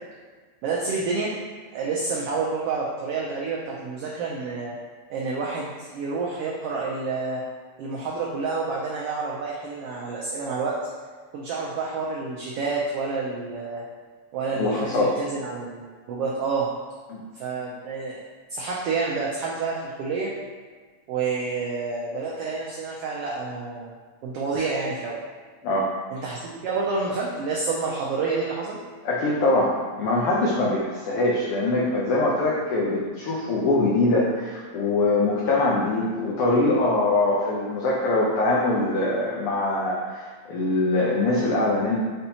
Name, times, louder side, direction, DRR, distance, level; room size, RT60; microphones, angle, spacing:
voice 1, 0.6-1.3 1.7-4.7 5.1-7.4 7.8-10.7 11.3-13.8 14.3-16.7 17.3-18.2 18.5-20.3 21.1-23.9 24.2-25.2 26.1-28.8, right 4 dB, 90° right, -4 dB, 1.3 m, -29 dB
voice 2, 14.6-15.2 17.1-17.2 25.6-25.9 29.0-42.0, left 2 dB, 85° left, -4 dB, 1.3 m, -23 dB
5.5 x 3.5 x 2.8 m, 1.5 s
omnidirectional pair, 3.3 m